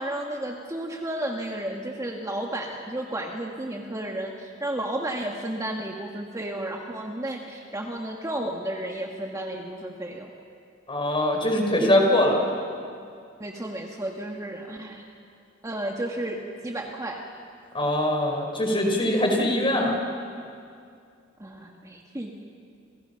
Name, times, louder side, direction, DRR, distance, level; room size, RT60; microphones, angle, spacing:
voice 1, 0.0-10.3 13.4-15.1 15.6-17.2 21.4-22.3, right 1 dB, 15° right, 1 dB, 1.6 m, -32 dB
voice 2, 10.9-12.5 17.7-20.0, left 1 dB, 25° left, 2 dB, 5.1 m, -22 dB
29.5 x 29.0 x 5.8 m, 2.4 s
head